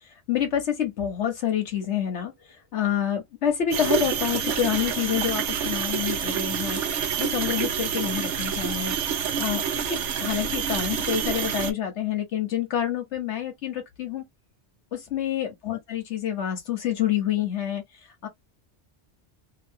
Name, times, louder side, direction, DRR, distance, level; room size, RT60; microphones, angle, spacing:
voice 1, 0.3-2.3 2.7-6.8 7.2-8.9 9.4-14.3 14.9-17.8 18.2-18.3, left 9 dB, 80° left, 1.2 m, -27 dB
sound 1, 3.7-11.7, right 7 dB, 85° right, 1.0 m, -27 dB
2.9 x 2.7 x 2.6 m
omnidirectional pair, 1.2 m